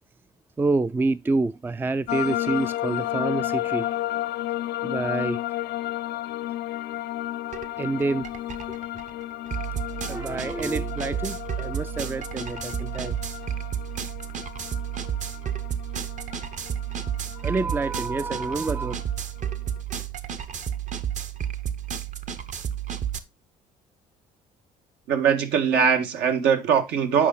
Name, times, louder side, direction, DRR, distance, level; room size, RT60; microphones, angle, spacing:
voice 1, 0.6-3.9 4.8-5.4 7.8-8.3 10.1-13.3 17.4-18.9, right 3 dB, 10° right, 0.4 m, -27 dB
sound 1, 2.1-19.8, left 14 dB, 75° left, 0.5 m, -33 dB
sound 2, 7.5-7.7 8.0-23.2, right 9 dB, 45° right, 0.9 m, -32 dB
voice 2, 25.1-27.3, right 7 dB, 80° right, 1.8 m, -21 dB
8.4 x 5.3 x 3.9 m
cardioid pair, 110°, 17 cm